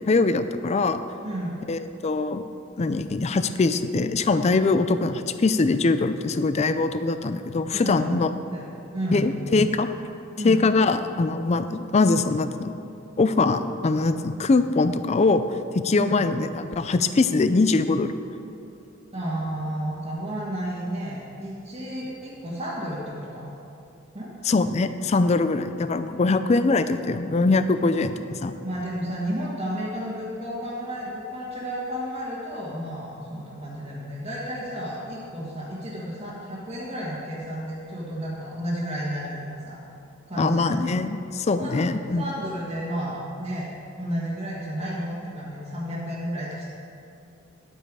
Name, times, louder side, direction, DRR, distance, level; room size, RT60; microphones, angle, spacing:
voice 1, 0.1-1.0 1.7-2.4 2.8-8.3 9.1-9.9 10.4-12.7 13.2-15.4 15.7-18.1 24.4-28.5 40.4-42.2, left 3 dB, 30° left, 11 dB, 0.4 m, -22 dB
voice 2, 1.2-1.6 7.7-8.7 8.9-9.2 10.4-10.6 16.0-16.2 19.1-23.5 24.1-24.3 26.1-26.2 28.6-39.8 40.3-40.8 41.6-41.9 42.2-46.7, equal, 30° right, -9 dB, 1.6 m, -32 dB
11.0 x 8.8 x 4.8 m, 2.7 s
head